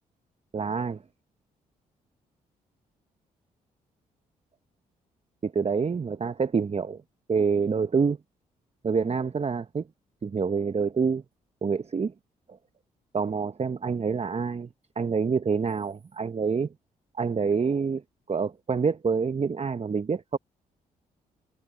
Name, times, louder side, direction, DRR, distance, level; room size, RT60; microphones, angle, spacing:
voice 1, 0.5-1.0 5.4-7.0 7.3-8.2 8.8-9.8 10.2-11.2 11.6-12.1 12.5-12.6 13.1-14.7 15.0-16.7 17.2-18.0 18.3-20.4, right 5 dB, 35° right, 1.1 m, -27 dB
hypercardioid pair, 45°, 18 cm